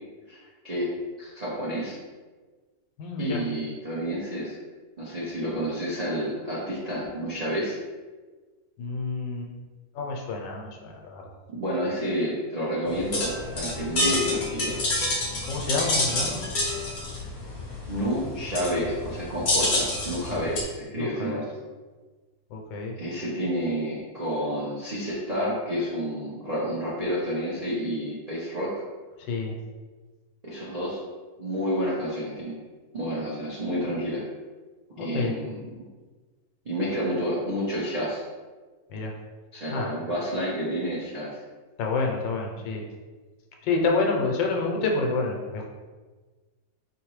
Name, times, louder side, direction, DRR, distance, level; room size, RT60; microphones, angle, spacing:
voice 1, 1.2-2.0 3.2-4.6 5.0-7.8 11.5-14.9 16.1-16.3 17.9-21.4 23.0-28.7 30.4-31.0 31.4-32.6 32.9-34.2 35.0-35.7 36.6-38.2 39.5-41.4, equal, 80° right, -7 dB, 0.3 m, -30 dB
voice 2, 3.0-3.4 8.8-9.5 9.9-11.2 15.4-16.4 20.3-20.4 20.9-21.4 22.5-23.0 29.2-29.5 35.0-35.3 38.9-39.1 39.7-39.9 41.8-42.8 43.6-45.7, left 3 dB, 85° left, 0 dB, 1.4 m, -28 dB
sound 1, 12.9-20.6, left 2 dB, 55° left, 1.2 m, -28 dB
4.0 x 3.4 x 3.1 m, 1.3 s
omnidirectional pair, 2.0 m